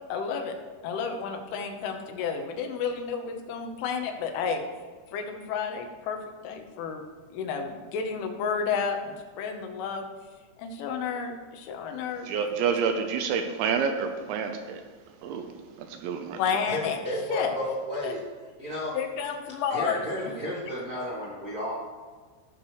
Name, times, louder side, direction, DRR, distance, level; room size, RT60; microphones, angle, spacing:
voice 1, 0.1-0.6 0.8-4.6 5.1-6.2 6.4-7.0 7.3-10.0 10.6-12.3 16.4-17.0 17.3-17.7 18.0-18.1 19.0-20.0, left 6 dB, 80° left, 4 dB, 3.5 m, -31 dB
voice 2, 12.2-14.8 15.2-15.5 15.8-16.4, right 6 dB, 80° right, 6 dB, 2.9 m, -28 dB
voice 3, 16.6-18.2 18.6-18.9 19.7-21.7, equal, 60° right, -8 dB, 0.9 m, -32 dB
17.5 x 6.7 x 3.1 m, 1.5 s
omnidirectional pair, 5.6 m